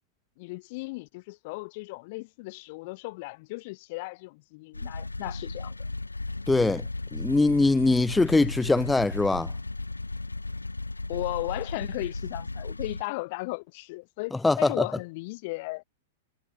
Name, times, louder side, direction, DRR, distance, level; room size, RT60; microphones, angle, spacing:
voice 1, 0.4-5.8 11.1-15.8, left 24 dB, 45° left, 0.8 m, -36 dB
sound 1, 4.7-13.0, left 3 dB, 85° left, 2.5 m, -35 dB
voice 2, 6.5-6.8 7.1-9.5 14.4-14.8, left 3 dB, 5° left, 0.5 m, -22 dB
figure-of-eight pair, 100°, 0 cm